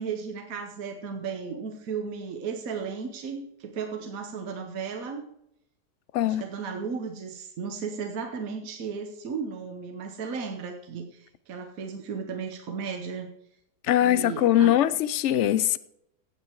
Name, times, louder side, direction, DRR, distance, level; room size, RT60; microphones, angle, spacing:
voice 1, 0.0-5.2 6.2-13.3 14.0-14.7, right 5 dB, 60° right, 1.5 m, -35 dB
voice 2, 13.8-15.8, left 12 dB, 70° left, 0.6 m, -22 dB
16.0 x 7.7 x 4.6 m
omnidirectional pair, 1.8 m